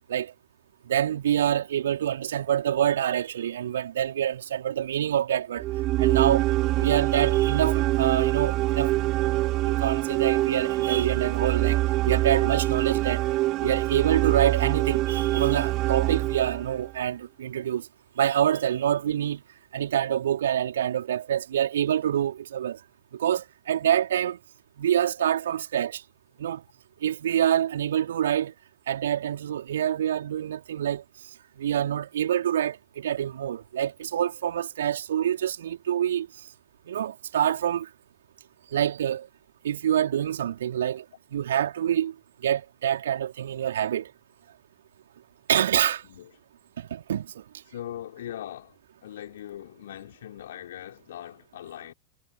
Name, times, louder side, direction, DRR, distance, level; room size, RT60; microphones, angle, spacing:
voice 1, 0.8-5.6 6.0-6.5 6.8-8.9 9.6-13.2 13.6-17.9 18.2-19.4 19.7-22.8 23.1-24.4 24.8-26.0 26.4-26.6 27.0-28.5 28.9-31.0 31.6-36.3 36.9-37.9 38.7-39.3 39.6-41.0 41.3-42.1 42.4-44.1 45.5-46.0 46.8-47.4, right 10 dB, 60° right, 3.8 m, -26 dB
sound 1, 5.6-16.9, right 17 dB, 35° right, 2.8 m, -25 dB
voice 2, 47.7-48.8 49.0-51.9, left 11 dB, 60° left, 4.5 m, -40 dB
figure-of-eight pair, 90°, 0 cm